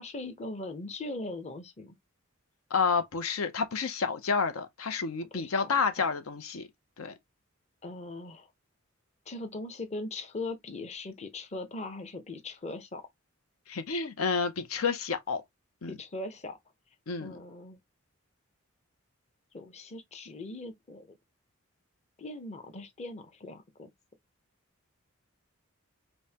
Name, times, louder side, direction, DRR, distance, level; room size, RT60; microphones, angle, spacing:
voice 1, 0.0-2.0 5.3-6.0 7.8-8.5 9.3-13.0 15.9-16.6 17.2-17.8 19.5-21.2 22.2-23.9, left 2 dB, 30° left, 0.7 m, -40 dB
voice 2, 2.7-6.7 7.0-7.1 13.7-15.4 15.8-16.0 17.1-17.4, left 5 dB, 80° left, 0.6 m, -30 dB
5.3 x 2.1 x 2.8 m
head